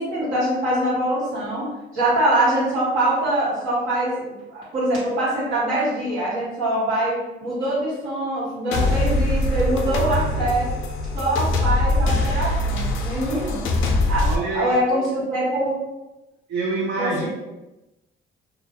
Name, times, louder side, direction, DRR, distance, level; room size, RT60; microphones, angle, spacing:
voice 1, 0.0-1.7 1.9-7.1 7.4-10.7 11.1-13.6 14.1-15.7 17.0-17.3, right 1 dB, 90° right, -8 dB, 1.3 m, -23 dB
sound 1, 8.7-14.3, left 2 dB, 85° left, 0.4 m, -22 dB
voice 2, 14.2-14.8 16.5-17.3, right 3 dB, 65° right, -3 dB, 0.5 m, -26 dB
2.4 x 2.2 x 2.8 m, 1.0 s
cardioid pair, 90°, 20 cm